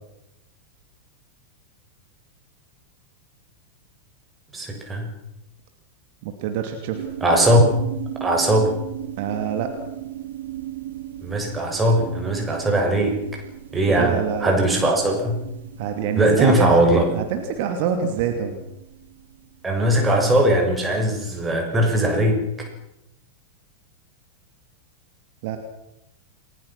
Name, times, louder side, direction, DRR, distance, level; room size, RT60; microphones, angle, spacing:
voice 1, 4.5-5.1 7.2-7.6 8.2-8.7 11.2-13.2 13.7-15.4 16.2-17.1 19.6-22.7, right 1 dB, 15° right, 2 dB, 6.8 m, -19 dB
voice 2, 6.2-7.1 9.2-9.7 13.9-14.6 15.8-16.8 17.1-18.6 25.4-25.6, right 8 dB, 50° right, 6 dB, 2.5 m, -26 dB
sound 1, 6.9-20.3, right 13 dB, 65° right, 3.8 m, -37 dB
29.0 x 20.0 x 6.1 m, 0.89 s
figure-of-eight pair, 90°, 0 cm